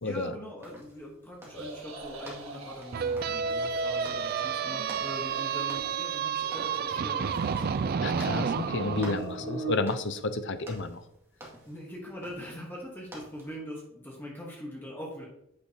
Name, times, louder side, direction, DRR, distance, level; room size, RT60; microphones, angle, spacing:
voice 1, 0.0-8.4 9.4-9.5 11.4-15.3, equal, 10° left, -3 dB, 1.2 m, -42 dB
sound 1, 0.6-13.5, equal, 10° right, 2.1 m, -50 dB
sound 2, 1.5-3.2 3.5-4.3 4.6-6.0 6.3-7.9 8.3-9.8, right 3 dB, 75° right, 1.7 m, -42 dB
sound 3, 2.9-9.2, right 6 dB, 45° right, 0.3 m, -30 dB
voice 2, 8.0-11.0, left 3 dB, 60° left, 10 dB, 0.6 m, -31 dB
8.5 x 6.2 x 2.9 m, 0.79 s
head